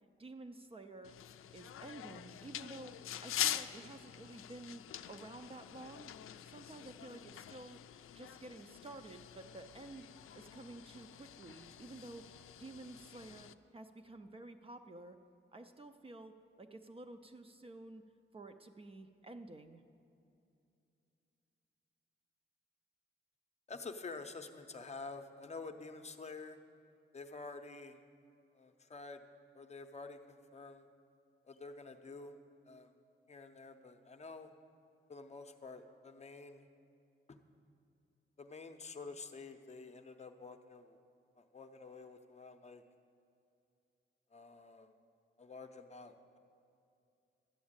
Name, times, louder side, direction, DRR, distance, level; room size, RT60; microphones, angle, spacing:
voice 1, 0.2-1.2 1.5-6.1 6.4-7.8 8.1-10.1 10.3-12.3 12.6-15.2 15.5-18.0 18.3-19.8, right 2 dB, 25° right, 7 dB, 0.4 m, -51 dB
sound 1, 1.0-13.5, left 11 dB, 90° left, 0.4 m, -45 dB
voice 2, 23.7-26.6 27.1-28.0 28.5-29.2 29.5-30.9 31.4-32.4 32.7-32.9 33.3-34.5 35.1-36.7 37.3-37.4 38.4-41.0 41.4-42.8 44.3-44.9 45.4-46.4, left 3 dB, 30° left, 7 dB, 0.6 m, -49 dB
12.5 x 7.2 x 8.8 m, 2.6 s
wide cardioid pair, 175°, 21 cm